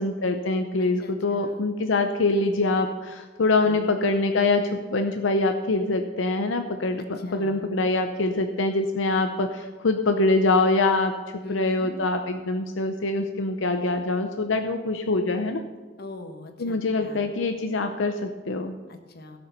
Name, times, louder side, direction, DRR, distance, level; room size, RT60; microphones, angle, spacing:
voice 1, 0.0-15.6 16.6-18.7, left 2 dB, 85° left, 6 dB, 0.7 m, -24 dB
voice 2, 1.0-1.6 3.6-4.0 7.2-7.7 11.4-12.0 16.0-17.3 18.9-19.4, left 2 dB, 55° left, 6 dB, 1.3 m, -41 dB
16.5 x 6.8 x 5.3 m, 1.4 s
head